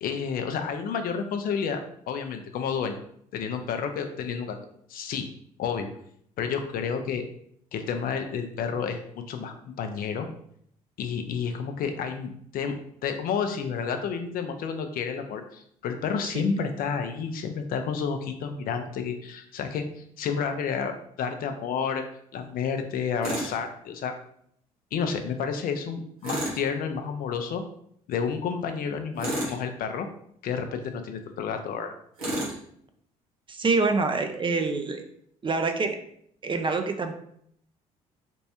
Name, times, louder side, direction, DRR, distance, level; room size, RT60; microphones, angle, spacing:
voice 1, 0.0-1.8 2.1-3.0 3.3-4.6 4.9-5.3 5.6-5.9 6.4-7.2 7.7-9.0 9.3-10.3 11.0-12.7 13.0-22.0 22.3-24.1 24.9-27.6 28.1-30.1 30.4-31.9, left 6 dB, 50° left, 6 dB, 0.5 m, -30 dB
Tools, 23.2-23.6 26.2-26.6 29.2-29.6 32.2-32.6, right 1 dB, 90° right, 1.0 m, -30 dB
voice 2, 33.5-35.0 35.4-36.0 36.4-37.1, right 3 dB, 25° right, 6 dB, 0.5 m, -26 dB
3.5 x 3.0 x 2.9 m, 0.68 s
hypercardioid pair, 50°, 18 cm